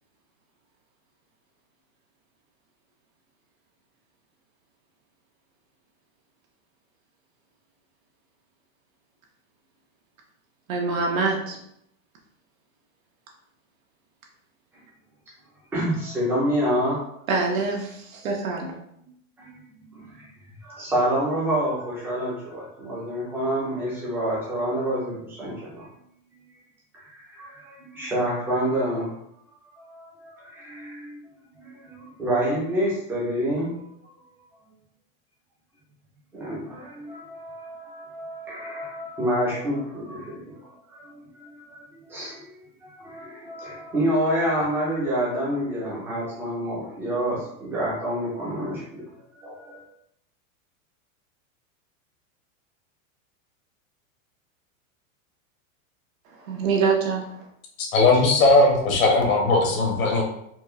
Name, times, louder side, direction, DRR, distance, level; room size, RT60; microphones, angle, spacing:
voice 1, 10.7-11.6 17.3-18.7 56.3-57.5, right 4 dB, 80° right, 0 dB, 1.2 m, -25 dB
voice 2, 15.7-17.0 19.0-19.1 19.4-20.3 20.6-25.9 26.3-26.4 26.9-29.1 29.4-33.8 36.3-49.0 49.3-49.8, equal, 5° right, -7 dB, 0.5 m, -28 dB
voice 3, 57.8-60.2, left 2 dB, 75° left, 0 dB, 1.3 m, -18 dB
4.4 x 2.4 x 3.1 m, 0.75 s
supercardioid pair, 175°, 40 cm